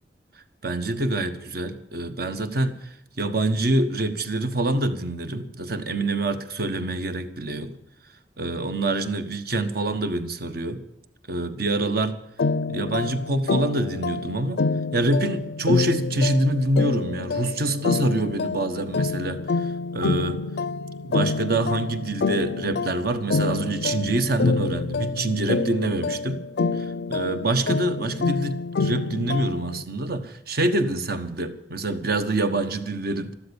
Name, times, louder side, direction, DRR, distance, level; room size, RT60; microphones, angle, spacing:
voice 1, 0.6-2.9 3.2-7.7 8.4-10.8 11.3-12.1 12.7-14.6 14.9-20.4 21.0-26.4 26.8-33.4, right 2 dB, 60° right, 9 dB, 1.3 m, -26 dB
sound 1, 12.4-29.8, left 4 dB, 65° left, 0.5 m, -27 dB
13.5 x 13.0 x 7.0 m, 0.73 s
head